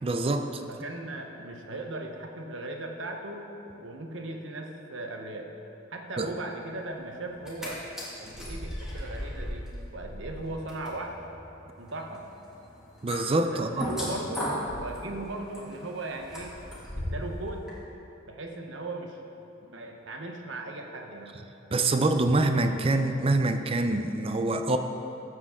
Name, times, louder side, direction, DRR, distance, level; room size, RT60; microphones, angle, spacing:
voice 1, 0.0-0.6 6.2-6.3 13.0-13.9 21.7-24.8, right 2 dB, 30° right, 8 dB, 0.4 m, -25 dB
voice 2, 0.7-5.5 5.9-7.8 8.2-11.2 11.8-12.3 13.5-16.6 16.9-17.7 18.3-19.2 19.7-21.3, right 2 dB, 65° right, 3 dB, 1.0 m, -38 dB
sound 1, 7.3-7.7 8.0-17.3 17.7-17.8, equal, 5° right, 1.8 m, -38 dB
13.5 x 7.5 x 3.6 m, 3.0 s
head